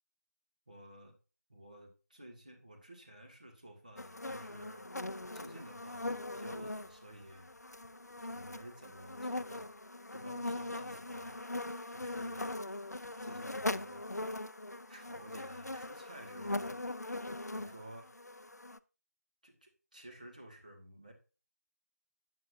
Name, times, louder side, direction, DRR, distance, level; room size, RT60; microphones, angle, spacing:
voice 1, 0.7-1.1 1.5-4.9 5.3-7.5 8.2-9.8 10.1-11.4 11.9-12.5 13.2-14.0 14.9-16.9 17.5-18.1 19.4-21.1, right 1 dB, 25° right, 1 dB, 1.6 m, -52 dB
sound 1, 4.0-18.8, left 2 dB, 75° left, 0.5 m, -41 dB
9.2 x 8.0 x 2.5 m, 0.33 s
figure-of-eight pair, 175°, 9 cm